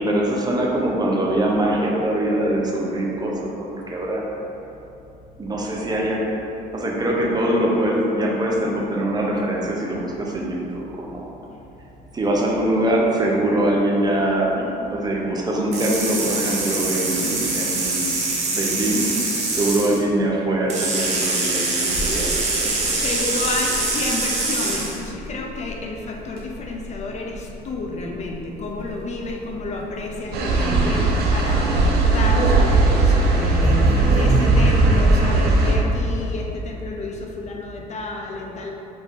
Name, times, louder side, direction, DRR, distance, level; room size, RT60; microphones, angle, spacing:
voice 1, 0.0-4.2 5.4-6.2 6.7-11.3 12.1-18.1 18.5-23.0, right 1 dB, 25° right, -2 dB, 0.6 m, -23 dB
sound 1, 15.7-20.0 20.7-25.0, right 3 dB, 40° right, 0.9 m, -24 dB
Crackle, 21.9-35.5, equal, 65° left, 1.3 m, -26 dB
voice 2, 22.8-38.7, left 2 dB, 40° left, 0 dB, 0.5 m, -30 dB
sound 2, 30.3-35.8, right 3 dB, 70° right, 0.6 m, -18 dB
5.1 x 2.6 x 3.6 m, 2.8 s
cardioid pair, 110°, 17 cm